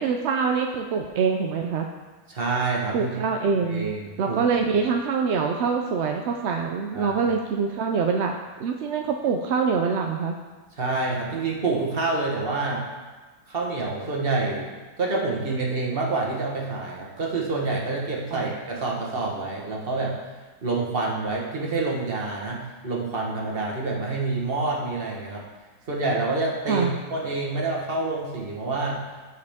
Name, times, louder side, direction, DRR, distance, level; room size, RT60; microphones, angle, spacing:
voice 1, 0.0-1.9 2.9-3.9 4.2-8.3 8.6-10.4 18.3-18.5 26.7-26.9, right 5 dB, 65° right, 3 dB, 0.7 m, -24 dB
voice 2, 2.3-3.1 3.6-4.4 4.7-4.8 6.9-7.1 10.8-12.8 13.5-14.7 15.0-20.1 20.6-25.4 25.9-29.0, right 3 dB, 40° right, -2 dB, 1.5 m, -27 dB
14.0 x 4.7 x 3.6 m, 1.3 s
omnidirectional pair, 1.6 m